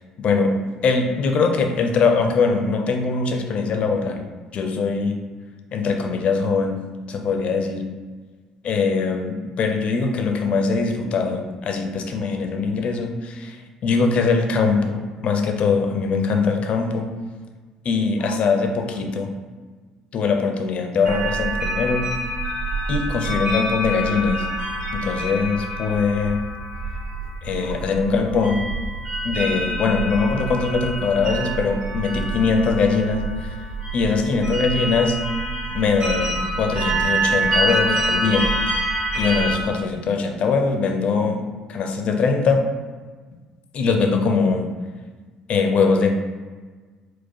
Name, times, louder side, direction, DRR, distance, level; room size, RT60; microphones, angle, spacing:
voice 1, 0.2-4.3 4.5-5.2 5.7-6.8 7.1-7.9 8.6-17.1 17.8-19.3 20.1-22.1 22.9-24.5 24.9-26.4 27.4-28.7 29.2-33.6 33.9-35.1 35.7-38.5 39.1-42.7 43.7-44.7 45.5-46.1, left 4 dB, 45° left, 4 dB, 0.5 m, -22 dB
sound 1, 21.1-39.6, right 2 dB, 40° right, 1.2 m, -26 dB
4.6 x 2.1 x 4.2 m, 1.4 s
figure-of-eight pair, 55°, 3 cm